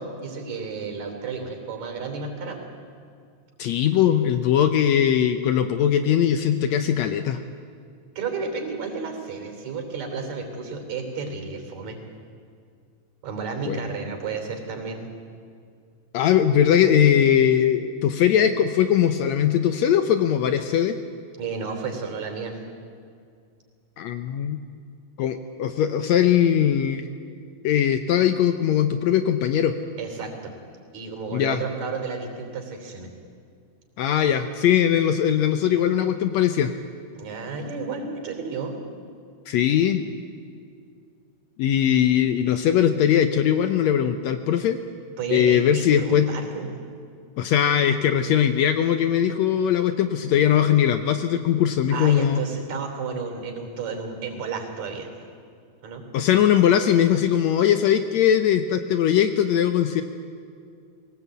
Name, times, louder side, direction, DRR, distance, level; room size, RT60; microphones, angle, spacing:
voice 1, 0.0-2.6 8.2-12.0 13.2-15.0 21.4-22.5 30.0-30.6 30.9-33.1 37.1-38.8 45.2-46.7 51.9-55.1 55.8-56.0, right 4 dB, 65° right, 4 dB, 4.6 m, -32 dB
voice 2, 3.6-7.4 13.7-13.8 16.1-21.0 24.0-24.6 25.2-27.0 27.6-29.8 31.3-31.6 34.0-36.7 39.5-40.0 41.6-44.8 45.3-46.3 47.4-52.4 56.1-60.0, left 9 dB, 75° left, 8 dB, 1.9 m, -20 dB
21.0 x 18.5 x 8.3 m, 2.3 s
omnidirectional pair, 3.4 m